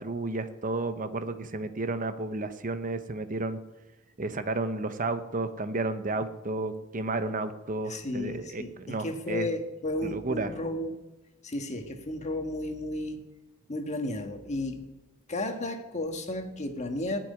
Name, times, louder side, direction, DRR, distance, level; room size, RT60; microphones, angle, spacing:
voice 1, 0.0-3.6 4.2-9.5 10.0-10.5, right 2 dB, 40° right, 10 dB, 0.9 m, -32 dB
voice 2, 7.9-11.0 11.4-13.2 13.7-14.8 15.3-17.2, left 1 dB, 35° left, 5 dB, 1.6 m, -33 dB
15.5 x 6.2 x 9.7 m, 1.0 s
head